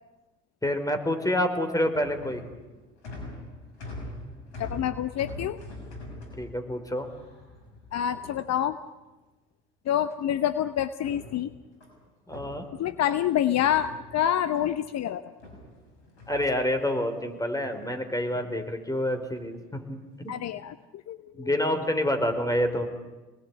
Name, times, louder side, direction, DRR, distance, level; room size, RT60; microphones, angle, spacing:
voice 1, 0.6-2.4 6.4-7.1 12.3-12.7 16.3-20.3 21.4-22.9, left 1 dB, 10° left, 7 dB, 4.7 m, -28 dB
sound 1, 1.6-9.0 10.1-10.6 10.9-13.3 13.6-14.9 15.4-17.0 17.5-17.9 18.2-18.6 19.3-19.7 20.2-20.5, left 1 dB, 90° left, 6.1 m, -44 dB
voice 2, 4.6-5.6 7.9-8.8 9.9-11.5 12.8-15.3 20.3-21.5, left 10 dB, 50° left, 12 dB, 1.0 m, -27 dB
27.0 x 20.0 x 9.8 m, 1.2 s
hypercardioid pair, 65°, 33 cm